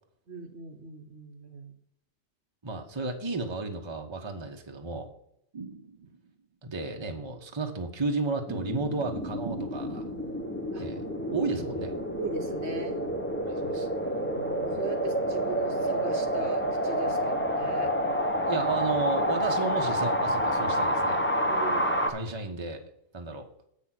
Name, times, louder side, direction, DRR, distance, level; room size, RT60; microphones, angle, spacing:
voice 1, 0.3-1.7 10.7-10.9 11.3-11.5 12.2-13.0 14.2-17.9 21.5-21.8, right 4 dB, 55° right, 6 dB, 1.4 m, -39 dB
voice 2, 2.6-5.1 6.6-10.1 10.8-11.0 11.3-11.9 13.4-13.9 18.5-21.2 22.1-22.8 23.1-23.5, right 3 dB, 20° right, 3 dB, 1.1 m, -33 dB
sound 1, 5.5-6.4 9.4-10.3, right 5 dB, 40° right, 0.6 m, -42 dB
sound 2, 8.5-22.1, equal, 10° left, 1.1 m, -29 dB
8.4 x 6.5 x 6.0 m, 0.75 s
omnidirectional pair, 1.4 m